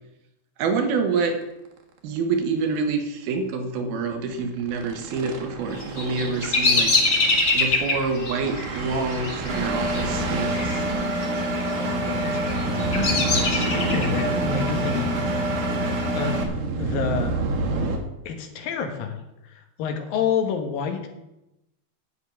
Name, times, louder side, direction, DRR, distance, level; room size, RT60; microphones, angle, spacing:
voice 1, 0.6-1.4 2.0-7.0 7.5-10.9, right 4 dB, 80° right, 5 dB, 3.3 m, -27 dB
sound 1, 1.3-1.4 1.8-1.9 2.2-2.3 2.6-2.8 4.1-18.0, right 3 dB, 65° right, 2.9 m, -31 dB
Bird vocalization bird call bird song, 5.7-10.8 11.0-11.6 12.2-14.2, left 3 dB, 35° left, 2.1 m, -24 dB
Engine, 9.5-16.4, right 1 dB, 45° right, 2.3 m, -27 dB
voice 2, 11.7-13.2 13.5-15.2 16.1-16.5 16.8-17.4 18.3-21.1, left 6 dB, 70° left, 6 dB, 3.0 m, -29 dB
10.0 x 6.9 x 9.1 m, 0.91 s
omnidirectional pair, 4.3 m